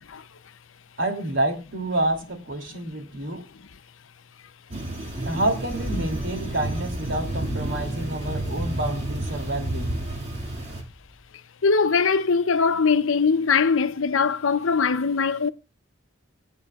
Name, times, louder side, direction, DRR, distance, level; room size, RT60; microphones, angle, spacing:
voice 1, 1.0-3.4 5.2-10.0, right 1 dB, 70° right, 2.8 m, -28 dB
sound 1, 4.7-10.8, right 1 dB, 30° right, 2.3 m, -31 dB
Engine starting, 5.7-11.2, left 1 dB, 15° left, 5.8 m, -38 dB
voice 2, 11.6-15.5, left 5 dB, 85° left, 0.7 m, -21 dB
24.0 x 8.3 x 2.4 m
head